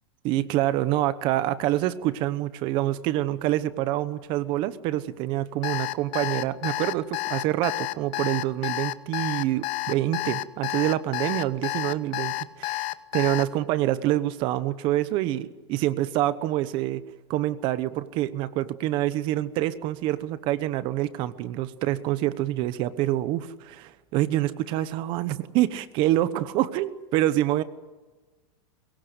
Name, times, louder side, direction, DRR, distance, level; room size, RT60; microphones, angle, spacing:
voice 1, 0.2-17.0 17.3-27.6, right 14 dB, 35° right, 14 dB, 1.0 m, -26 dB
Alarm, 5.6-13.4, left 18 dB, 35° left, 0.8 m, -30 dB
23.0 x 22.0 x 8.1 m, 1.3 s
supercardioid pair, 170°, 15 cm